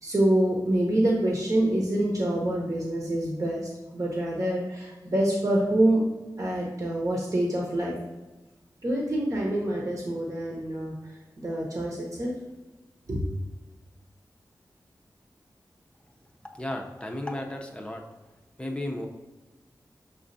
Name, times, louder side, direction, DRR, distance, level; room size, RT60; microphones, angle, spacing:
voice 1, 0.0-6.0 6.4-7.9 8.8-10.9 11.4-12.3 13.1-13.2, right 1 dB, 50° right, -3 dB, 0.9 m, -26 dB
voice 2, 16.6-18.0 18.6-19.1, left 1 dB, 15° left, 2 dB, 0.6 m, -34 dB
6.2 x 2.4 x 2.6 m, 1.1 s
wide cardioid pair, 55°, 7 cm